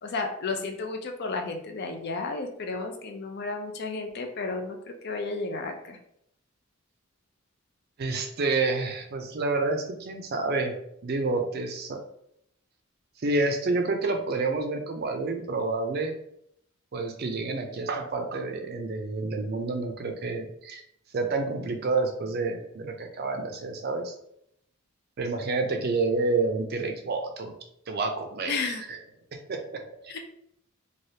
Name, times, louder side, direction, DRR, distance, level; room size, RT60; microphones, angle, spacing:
voice 1, 0.0-4.8 5.0-6.0 28.5-28.8 30.1-30.2, left 3 dB, 50° left, 4 dB, 0.5 m, -32 dB
voice 2, 8.0-10.7 11.0-12.0 13.2-16.1 16.9-20.8 21.1-24.1 25.2-27.5 27.9-29.0 29.3-29.8, right 3 dB, 50° right, 4 dB, 0.4 m, -29 dB
3.2 x 2.3 x 2.7 m, 0.72 s
head